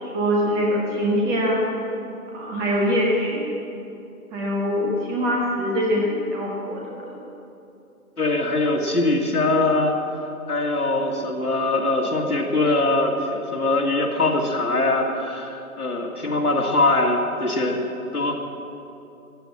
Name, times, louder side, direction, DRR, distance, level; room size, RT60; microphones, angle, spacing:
voice 1, 0.0-1.6 2.3-3.4 4.3-7.2, equal, 5° right, -2 dB, 0.6 m, -23 dB
voice 2, 8.2-10.0 10.5-17.8 18.1-18.3, left 2 dB, 85° left, 0 dB, 2.4 m, -22 dB
14.0 x 9.2 x 8.4 m, 2.8 s
figure-of-eight pair, 125°, 44 cm